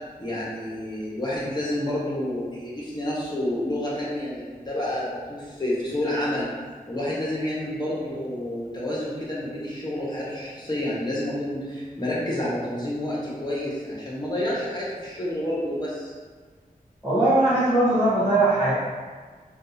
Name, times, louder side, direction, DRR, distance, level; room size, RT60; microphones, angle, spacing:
voice 1, 0.2-6.5 6.9-16.1, left 1 dB, 25° left, -7 dB, 1.1 m, -29 dB
voice 2, 17.0-18.7, right 2 dB, ahead, -14 dB, 1.1 m, -20 dB
3.5 x 2.4 x 2.7 m, 1.5 s
wide cardioid pair, 55°, 15 cm